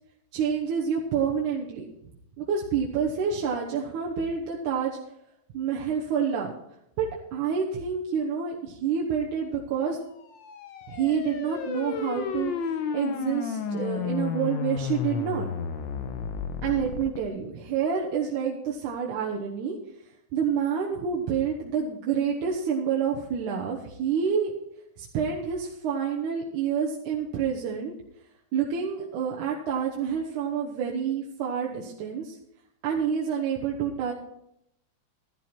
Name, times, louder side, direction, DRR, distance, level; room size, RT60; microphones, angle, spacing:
voice 1, 0.3-1.9 2.4-4.9 5.5-6.5 7.0-7.1 7.3-10.0 10.9-15.5 16.6-19.8 20.3-24.5 25.0-27.9 28.5-32.4 32.8-34.1, right 7 dB, 85° right, -2 dB, 2.6 m, -28 dB
sound 1, 10.3-17.2, left 6 dB, 85° left, 1.0 m, -32 dB
12.5 x 12.0 x 4.4 m, 0.80 s
omnidirectional pair, 3.4 m